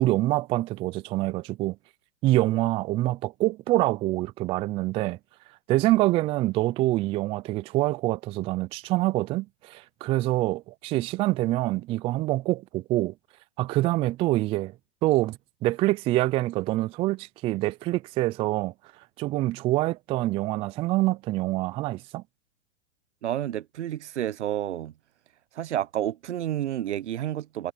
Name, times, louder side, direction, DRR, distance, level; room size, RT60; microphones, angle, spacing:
voice 1, 0.0-1.8 2.2-5.2 5.7-13.1 13.6-14.7 15.0-18.7 19.2-22.2, right 17 dB, 20° right, 0.3 m, -25 dB
voice 2, 23.2-24.9 25.6-27.7, right 12 dB, 80° right, 0.8 m, -30 dB
hypercardioid pair, 115°, 34 cm